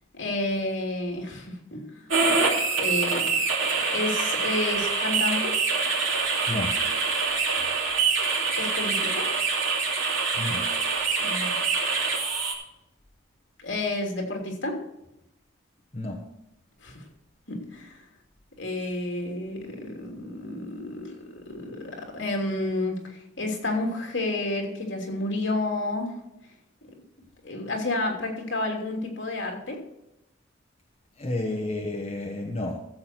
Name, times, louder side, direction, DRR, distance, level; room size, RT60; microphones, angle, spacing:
voice 1, 0.1-1.9 2.8-3.4 3.9-5.6 8.6-9.3 11.2-11.6 13.6-14.8 16.8-17.0 17.5-18.0 18.6-26.1 27.4-29.8, left 2 dB, 65° left, 1 dB, 3.0 m, -30 dB
sound 1, 2.1-12.5, right 4 dB, 85° right, 3.0 m, -25 dB
voice 2, 31.2-32.8, left 2 dB, 30° left, 0 dB, 1.1 m, -30 dB
14.5 x 7.5 x 4.5 m, 0.88 s
head